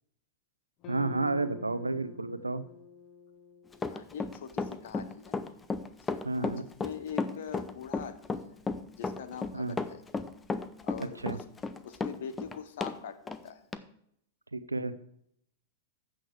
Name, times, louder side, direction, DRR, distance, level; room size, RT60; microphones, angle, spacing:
sound 1, 0.8-5.2, left 6 dB, 40° left, 1.1 m, -49 dB
voice 1, 0.9-2.6 6.2-6.6 9.5-9.8 11.2-11.4 14.5-14.9, right 3 dB, 90° right, 12 dB, 0.7 m, -31 dB
Run, 3.7-13.0 13.3-13.4 13.7-13.8, left 4 dB, 15° left, 0.8 m, -33 dB
voice 2, 3.9-5.4 6.4-6.5 6.8-8.6 9.0-10.0 10.8-11.4 11.8-13.7, left 8 dB, 60° left, 13 dB, 1.1 m, -43 dB
14.5 x 6.3 x 4.7 m, 0.71 s
figure-of-eight pair, 95°, 0 cm